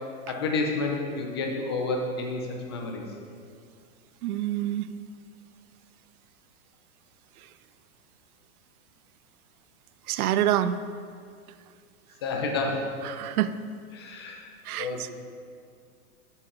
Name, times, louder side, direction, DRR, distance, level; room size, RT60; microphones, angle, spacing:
voice 1, 0.3-2.4 2.7-3.0 12.2-12.9 13.9-14.5 14.7-15.1, left 3 dB, 20° left, 1 dB, 0.3 m, -29 dB
voice 2, 4.2-4.9 10.1-10.8 13.0-13.5 14.7-15.1, right 12 dB, 80° right, 13 dB, 0.5 m, -26 dB
7.9 x 5.8 x 3.7 m, 2.2 s
hypercardioid pair, 150°, 43 cm